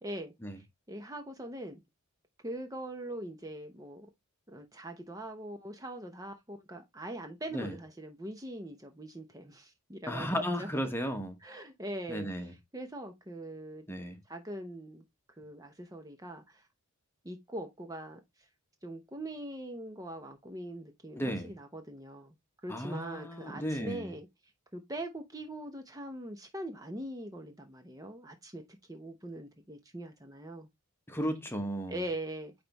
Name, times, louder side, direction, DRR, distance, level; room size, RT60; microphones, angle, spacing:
voice 1, 0.0-1.8 2.4-4.1 4.5-10.7 11.4-13.8 14.3-15.0 15.4-16.7 17.2-18.2 18.8-22.3 22.6-24.3 24.7-28.6 28.9-30.7 31.9-32.5, right 1 dB, 15° right, 0.7 m, -42 dB
voice 2, 10.1-11.4 12.1-12.5 13.9-14.2 21.2-21.5 22.7-24.1 31.1-32.0, equal, 10° left, 1.0 m, -34 dB
9.3 x 3.4 x 3.0 m
head